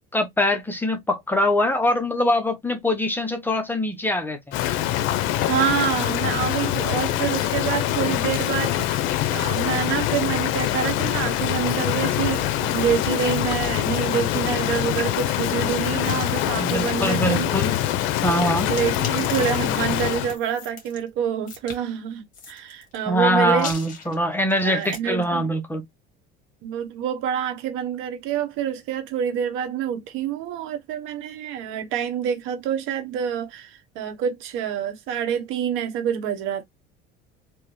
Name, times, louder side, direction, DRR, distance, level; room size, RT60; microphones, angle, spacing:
voice 1, 0.1-4.6 16.6-17.8 18.2-18.7 23.1-25.8, left 1 dB, 10° left, 0.7 m, -23 dB
Rain, 4.5-20.4, left 13 dB, 70° left, 0.6 m, -24 dB
voice 2, 5.4-17.5 18.7-23.7 24.6-25.5 26.6-36.6, right 9 dB, 70° right, 1.0 m, -27 dB
sound 1, 18.8-21.0 21.5-21.8 22.3-23.0 23.5-25.0, left 5 dB, 40° left, 1.6 m, -38 dB
3.5 x 2.9 x 3.0 m
cardioid pair, 130°, 21 cm